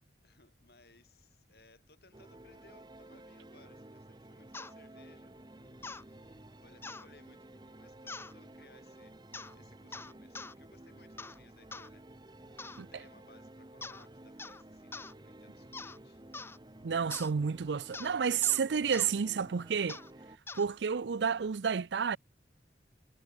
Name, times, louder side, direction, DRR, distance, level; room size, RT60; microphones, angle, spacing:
voice 1, 0.2-12.3 12.6-16.2 20.6-20.8, left 3 dB, 65° left, 7.7 m, -63 dB
sound 1, 2.1-20.4, right 1 dB, 25° right, 1.0 m, -53 dB
sound 2, 4.5-4.7 5.8-6.0 6.8-7.1 8.1-8.3 9.3-9.5 9.9-10.5 11.2-11.4 11.7-11.9 12.6-12.8 13.8-14.1 14.4-14.6 14.9-15.1 15.7-16.0 16.3-16.6 17.1-17.3 17.9-18.1 18.4-18.6 18.9-19.1 19.9-20.1 20.5-20.7, left 3 dB, 15° left, 0.7 m, -44 dB
voice 2, 16.8-20.0 20.5-22.2, right 6 dB, 85° right, 0.5 m, -30 dB
head